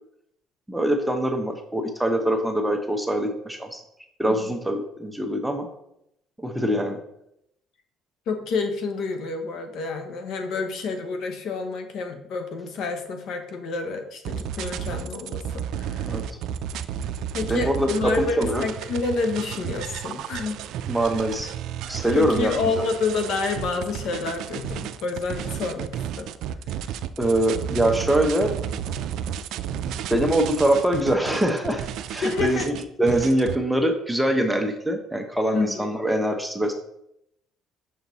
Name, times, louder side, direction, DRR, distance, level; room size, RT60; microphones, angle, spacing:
voice 1, 0.7-3.8 4.2-5.7 6.4-7.0 16.1-16.4 17.5-18.6 20.9-21.5 21.9-22.8 27.2-28.5 30.1-32.7 33.0-36.7, right 1 dB, 5° right, 4 dB, 0.8 m, -23 dB
voice 2, 8.3-16.2 17.3-20.6 22.1-26.3 26.7-26.9 32.2-32.8 35.5-35.9, left 4 dB, 65° left, 6 dB, 1.0 m, -29 dB
sound 1, 14.2-33.6, right 9 dB, 70° right, 0.4 m, -32 dB
6.6 x 4.5 x 4.0 m, 0.78 s
cardioid pair, 115°, 0 cm